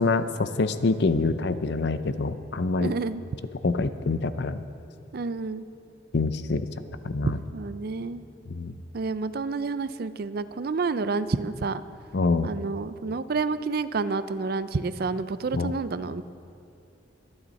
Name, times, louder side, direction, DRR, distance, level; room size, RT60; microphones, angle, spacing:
voice 1, 0.0-2.9 3.6-4.6 6.1-6.7 7.0-7.4 8.5-8.7 12.1-12.5 15.5-15.7, left 3 dB, 60° left, 12 dB, 0.6 m, -25 dB
voice 2, 2.8-3.2 5.1-5.7 7.2-8.2 8.9-11.8 12.4-16.2, right 4 dB, 55° right, 14 dB, 0.4 m, -29 dB
24.0 x 8.8 x 4.2 m, 2.5 s
head